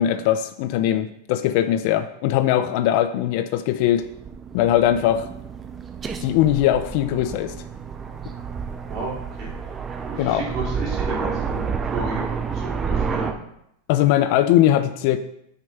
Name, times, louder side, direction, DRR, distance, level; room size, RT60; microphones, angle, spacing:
voice 1, 0.0-4.1 4.5-5.3 6.2-7.5 10.2-10.4 13.9-15.2, left 12 dB, 45° left, 11 dB, 0.4 m, -20 dB
Aircraft, 3.8-13.3, right 5 dB, 15° right, 0.5 m, -30 dB
voice 2, 9.9-13.3, right 3 dB, 30° right, -4 dB, 2.6 m, -32 dB
6.5 x 5.3 x 5.8 m, 0.77 s
supercardioid pair, 170°, 0 cm